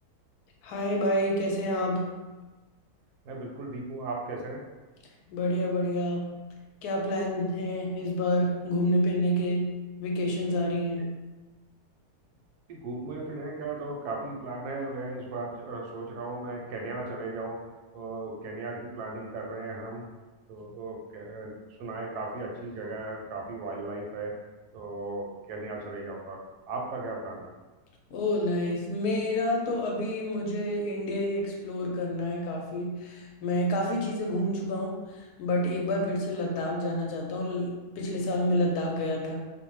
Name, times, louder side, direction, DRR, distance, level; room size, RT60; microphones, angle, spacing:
voice 1, 0.6-2.0 5.3-6.4 6.8-9.7 10.0-11.0 28.1-39.5, left 1 dB, 75° left, 0 dB, 1.1 m, -28 dB
voice 2, 3.2-4.6 11.0-11.1 12.7-17.6 17.9-20.0 20.5-21.5 21.8-24.3 24.7-26.4 26.7-27.5, right 2 dB, 80° right, 0 dB, 1.1 m, -36 dB
2.7 x 2.0 x 3.0 m, 1.2 s
omnidirectional pair, 1.7 m